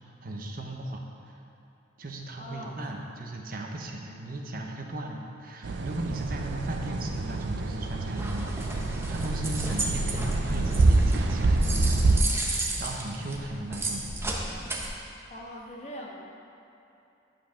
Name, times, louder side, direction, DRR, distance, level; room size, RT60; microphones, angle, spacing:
voice 1, 0.2-1.4 2.0-14.4, right 1 dB, 50° right, 1 dB, 0.8 m, -37 dB
voice 2, 2.4-2.8 15.3-16.2, equal, 35° left, -2 dB, 1.1 m, -41 dB
sound 1, 5.6-12.2, right 2 dB, 70° right, 0.5 m, -26 dB
Aircraft, 6.1-12.6, equal, 60° left, 1.0 m, -47 dB
sound 2, 8.2-14.9, right 2 dB, 15° right, 0.8 m, -33 dB
9.3 x 4.9 x 6.3 m, 2.8 s
head